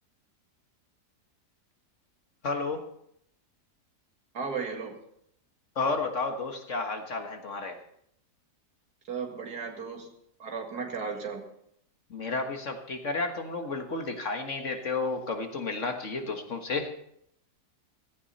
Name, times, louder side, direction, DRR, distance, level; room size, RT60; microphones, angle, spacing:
voice 1, 2.4-2.8 5.8-7.8 12.1-16.9, left 3 dB, 50° left, 4 dB, 1.8 m, -32 dB
voice 2, 4.3-5.0 9.1-10.1 10.4-11.5, right 5 dB, 70° right, 3 dB, 2.5 m, -35 dB
16.5 x 14.5 x 4.2 m, 0.72 s
omnidirectional pair, 1.7 m